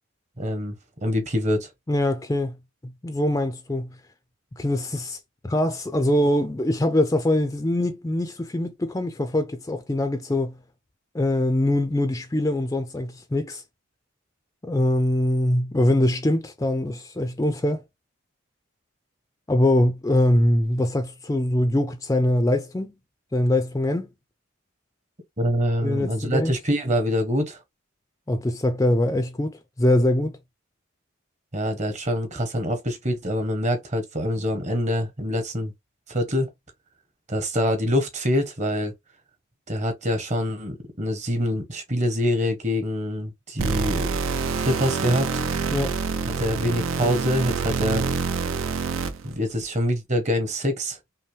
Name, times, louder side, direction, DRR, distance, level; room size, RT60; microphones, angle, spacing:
voice 1, 0.4-0.7 1.0-1.7 25.4-27.6 31.5-35.7 36.1-36.5 37.3-38.9 39.7-44.2 44.6-45.3 46.4-48.0 49.2-51.0, equal, 35° right, 0.9 m, -25 dB
voice 2, 1.9-2.6 2.8-3.9 4.6-5.2 5.4-10.5 11.1-13.6 14.6-17.8 19.5-22.9 23.3-24.1 25.8-26.5 28.3-30.4 45.7-46.0, left 1 dB, 15° left, 0.4 m, -23 dB
sound 1, 43.6-49.3, right 5 dB, 75° right, 0.5 m, -26 dB
5.4 x 2.1 x 3.2 m
head